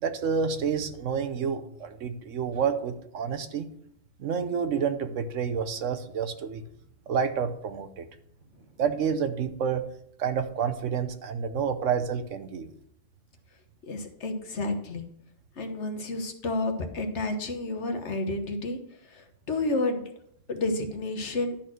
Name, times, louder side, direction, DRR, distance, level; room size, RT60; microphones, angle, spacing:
voice 1, 0.0-3.7 4.2-6.6 7.1-8.1 8.8-9.8 10.2-12.7, right 6 dB, 85° right, 9 dB, 1.2 m, -29 dB
voice 2, 13.9-15.1 15.6-18.8 19.5-20.0 20.5-21.5, left 2 dB, 70° left, 5 dB, 1.5 m, -30 dB
11.5 x 4.3 x 6.1 m, 0.72 s
omnidirectional pair, 1.3 m